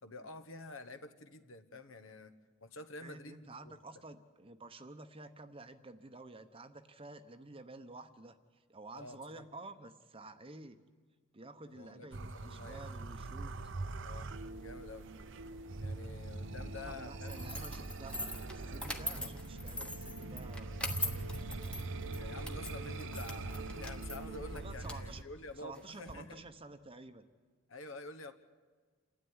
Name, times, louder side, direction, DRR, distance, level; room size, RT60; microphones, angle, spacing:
voice 1, 0.0-2.3 2.6-3.8 8.9-9.4 11.7-12.1 12.3-12.8 14.0-14.3 14.6-15.1 15.8-17.6 19.1-19.4 22.1-26.4 27.7-28.3, left 2 dB, 65° left, 10 dB, 1.2 m, -49 dB
voice 2, 3.0-8.4 8.7-10.8 11.3-13.5 16.7-21.3 24.5-25.2 25.6-27.2, right 2 dB, 25° right, 9 dB, 0.9 m, -51 dB
sound 1, 12.1-25.2, right 3 dB, 60° right, 0.8 m, -43 dB
sound 2, 14.3-24.8, right 1 dB, 90° right, 1.1 m, -50 dB
sound 3, 17.3-26.1, left 1 dB, 5° left, 1.1 m, -43 dB
28.0 x 12.5 x 9.7 m, 1.5 s
head